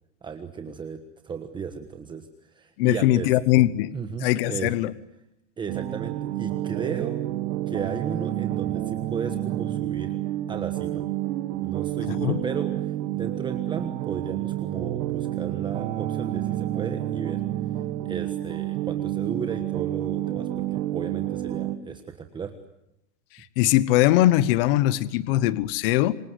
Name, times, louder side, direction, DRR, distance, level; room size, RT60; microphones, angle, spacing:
voice 1, 0.2-3.3 3.9-4.7 5.6-7.2 7.7-10.2 10.5-11.1 11.6-17.4 17.7-22.5, right 6 dB, 10° right, 7 dB, 1.3 m, -35 dB
voice 2, 2.8-3.9 4.2-4.9 12.1-12.4 23.6-26.1, left 15 dB, 50° left, 17 dB, 1.2 m, -21 dB
sound 1, 5.7-21.8, right 13 dB, 50° right, 2.2 m, -29 dB
28.5 x 25.0 x 7.9 m, 0.85 s
supercardioid pair, 165°, 37 cm